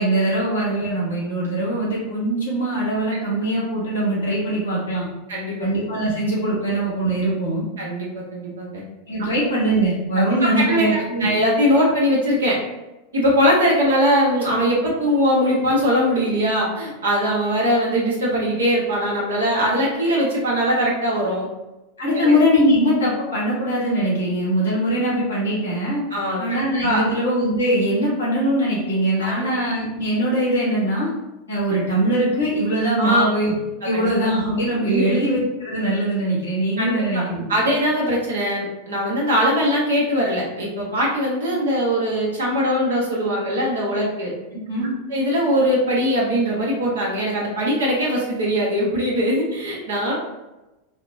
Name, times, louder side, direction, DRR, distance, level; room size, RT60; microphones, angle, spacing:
voice 1, 0.0-5.1 5.6-7.6 9.1-11.3 22.0-26.0 26.4-31.1 31.5-33.5 33.8-37.4 44.7-44.9, right 1 dB, 85° left, -5 dB, 1.4 m, -21 dB
voice 2, 7.8-8.8 10.4-12.6 13.1-21.5 22.1-22.3 26.1-27.0 29.2-29.5 33.0-33.2 33.8-34.1 34.9-35.1 36.8-37.2 37.5-44.3 45.1-50.1, equal, 75° right, -3 dB, 1.1 m, -21 dB
4.1 x 2.1 x 2.6 m, 1.0 s
figure-of-eight pair, 85°, 0 cm